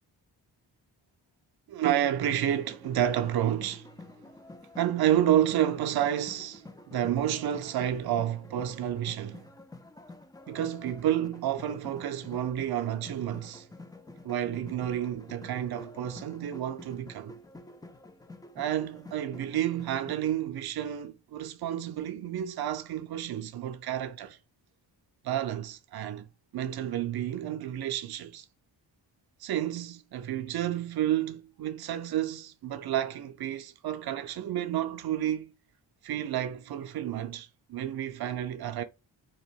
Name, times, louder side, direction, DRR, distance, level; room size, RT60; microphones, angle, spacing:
voice 1, 1.7-3.9 4.8-9.4 10.5-13.7 14.2-17.4 18.6-24.4 25.2-26.3 26.5-28.4 29.4-35.5 36.0-38.8, right 11 dB, 55° right, 0.6 m, -30 dB
sound 1, 2.2-20.2, left 2 dB, 10° left, 0.3 m, -49 dB
2.9 x 2.1 x 3.4 m
cardioid pair, 60°, 46 cm